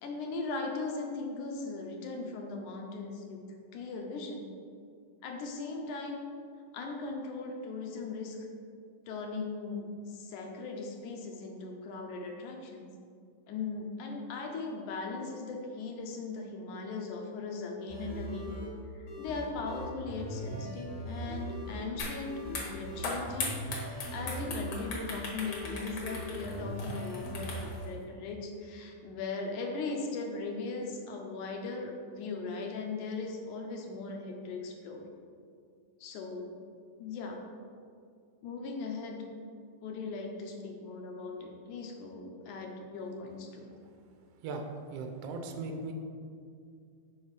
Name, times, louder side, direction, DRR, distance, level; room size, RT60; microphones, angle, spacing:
voice 1, 0.0-3.4 3.7-4.5 5.2-6.2 6.7-8.4 9.1-12.9 13.5-18.5 18.9-22.3 22.6-23.6 23.8-35.1 36.0-36.5 37.0-37.4 38.4-39.2 39.8-43.7, left 3 dB, 75° left, 2 dB, 2.2 m, -38 dB
sound 1, 17.9-27.6, equal, 40° left, 1.3 m, -40 dB
sound 2, 22.0-22.2 22.5-27.8, left 3 dB, 55° left, 2.3 m, -38 dB
voice 2, 44.9-45.9, right 3 dB, 85° right, 4 dB, 1.3 m, -38 dB
7.2 x 5.5 x 4.8 m, 2.3 s
omnidirectional pair, 3.8 m